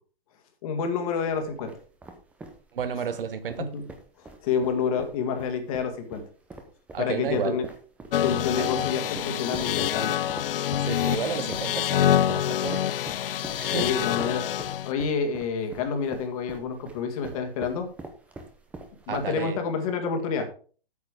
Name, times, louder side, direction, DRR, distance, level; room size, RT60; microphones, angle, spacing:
voice 1, 0.6-1.7 3.6-3.8 4.2-6.2 7.0-7.7 8.2-10.1 13.8-14.4 14.8-17.9 19.1-20.5, left 6 dB, 35° left, 6 dB, 1.8 m, -28 dB
sound 1, 1.3-19.6, right 3 dB, 5° right, 0.7 m, -44 dB
voice 2, 2.7-3.7 6.9-7.6 8.6-8.7 10.8-12.9 13.6-13.9 19.1-19.6, right 7 dB, 65° right, 11 dB, 1.3 m, -32 dB
sound 2, 8.1-14.9, left 10 dB, 65° left, 0.5 m, -26 dB
8.5 x 6.6 x 4.9 m, 0.40 s
hypercardioid pair, 150°, 30 cm